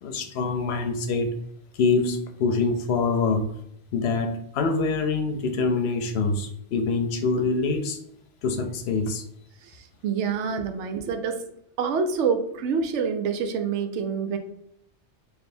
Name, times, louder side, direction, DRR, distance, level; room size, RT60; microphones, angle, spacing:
voice 1, 0.0-1.3 1.8-3.4 3.9-8.0 8.4-9.2, left 4 dB, 70° left, 7 dB, 0.8 m, -25 dB
voice 2, 10.0-11.4 11.8-14.4, right 6 dB, 80° right, 6 dB, 0.9 m, -26 dB
3.3 x 2.7 x 4.1 m, 0.73 s
omnidirectional pair, 1.2 m